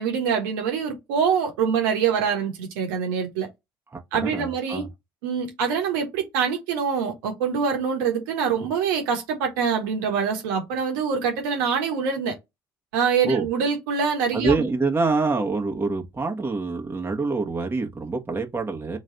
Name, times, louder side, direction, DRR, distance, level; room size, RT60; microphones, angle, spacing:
voice 1, 0.0-3.5 4.1-4.8 5.2-12.4 12.9-14.5, right 6 dB, 75° right, 1.2 m, -25 dB
voice 2, 3.9-4.9 13.2-13.5 14.3-19.0, right 3 dB, 20° right, 1.3 m, -26 dB
3.3 x 3.1 x 3.9 m
hypercardioid pair, 55°, 12 cm